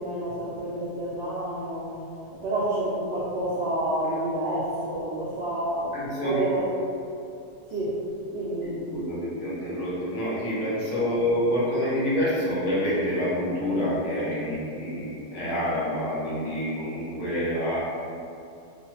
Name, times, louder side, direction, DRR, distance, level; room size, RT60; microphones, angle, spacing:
voice 1, 0.0-2.0 2.3-6.7 7.7-8.0 8.3-8.9 11.0-11.2, right 1 dB, 75° right, -7 dB, 0.6 m, -29 dB
voice 2, 5.9-6.4 8.9-17.8, equal, 55° left, -9 dB, 1.2 m, -27 dB
3.3 x 3.0 x 2.8 m, 2.6 s
omnidirectional pair, 1.8 m